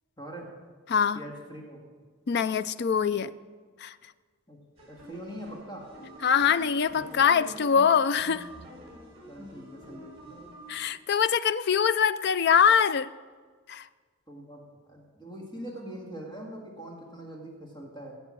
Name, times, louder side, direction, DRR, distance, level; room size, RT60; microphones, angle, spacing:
voice 1, 0.2-0.5 1.1-1.8 4.5-5.9 9.3-10.2 14.3-18.2, right 1 dB, 20° left, -1 dB, 1.9 m, -42 dB
voice 2, 0.9-1.2 2.3-3.3 3.8-3.9 6.2-8.5 10.7-13.1 13.7-13.8, left 7 dB, 50° left, 15 dB, 0.4 m, -23 dB
sound 1, 4.8-10.8, equal, 30° right, 4.4 m, -47 dB
16.5 x 7.9 x 6.2 m, 1.5 s
head